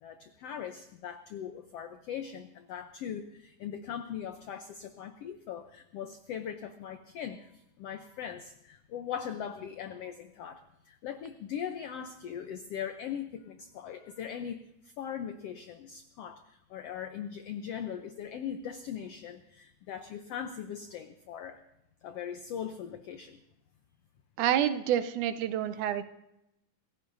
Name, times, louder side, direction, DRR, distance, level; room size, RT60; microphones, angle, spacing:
voice 1, 0.0-14.6 15.0-21.6 22.0-23.4, left 8 dB, 85° left, 8 dB, 1.3 m, -40 dB
voice 2, 24.4-26.0, right 10 dB, 75° right, 11 dB, 2.1 m, -28 dB
26.5 x 15.5 x 2.7 m, 0.85 s
omnidirectional pair, 3.8 m